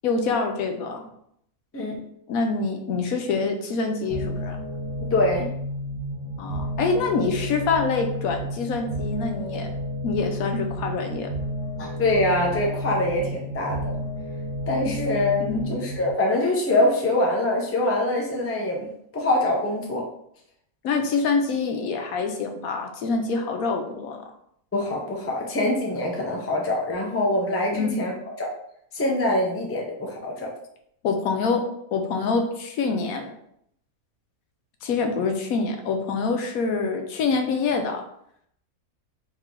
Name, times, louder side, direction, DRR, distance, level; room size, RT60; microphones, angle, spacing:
voice 1, 0.0-1.1 2.3-4.6 6.4-9.7 10.0-11.3 15.4-15.7 20.8-24.2 27.7-27.9 31.0-31.7 31.9-33.3 34.8-38.0, left 4 dB, 80° left, 4 dB, 1.1 m, -25 dB
sound 1, 4.1-16.1, equal, 25° right, 0.9 m, -31 dB
voice 2, 5.0-5.5 11.8-14.0 14.7-18.9 19.1-20.1 24.7-28.1 28.4-28.5 28.9-30.5, left 1 dB, 15° left, -1 dB, 0.5 m, -24 dB
3.6 x 3.1 x 3.7 m, 0.72 s
omnidirectional pair, 1.5 m